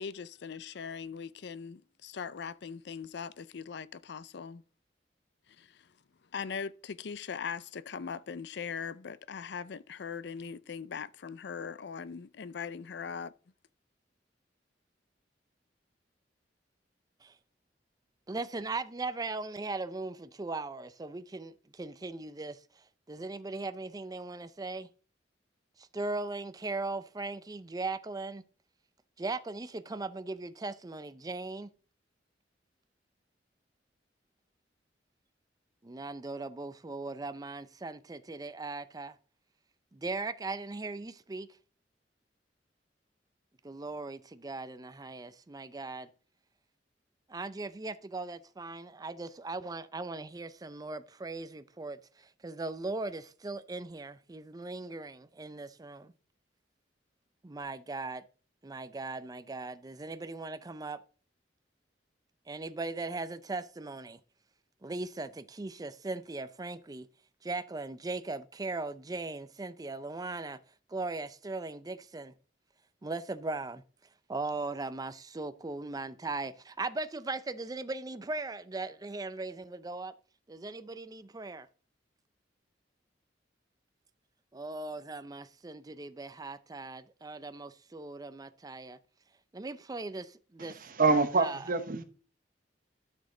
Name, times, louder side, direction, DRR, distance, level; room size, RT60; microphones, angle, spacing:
voice 1, 0.0-4.6 5.6-5.9 6.3-13.3, left 6 dB, 65° left, 0.5 m, -40 dB
voice 2, 18.3-22.6 23.1-24.9 25.9-28.4 29.2-31.7 35.8-39.1 39.9-41.5 43.6-46.1 47.3-52.0 52.4-56.1 57.4-58.2 58.6-61.0 62.5-64.2 64.8-67.1 67.4-70.6 70.9-72.3 73.0-73.8 74.3-80.1 80.5-81.7 84.5-89.0 89.5-90.9 91.4-91.6, right 3 dB, 20° right, 0.5 m, -38 dB
voice 3, 90.6-92.0, right 3 dB, 50° right, 1.1 m, -27 dB
12.5 x 6.4 x 3.8 m
head